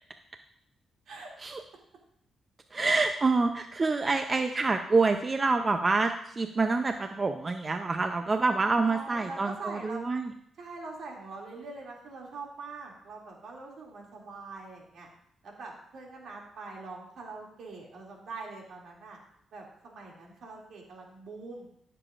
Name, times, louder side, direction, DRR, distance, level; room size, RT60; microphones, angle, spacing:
voice 1, 2.7-10.3, right 3 dB, 35° right, 7 dB, 0.5 m, -27 dB
voice 2, 8.8-10.0 10.6-15.1 15.4-19.2 19.5-21.7, right 3 dB, 75° right, -1 dB, 2.5 m, -43 dB
15.0 x 6.8 x 2.5 m, 0.73 s
cardioid pair, 75°, 0 cm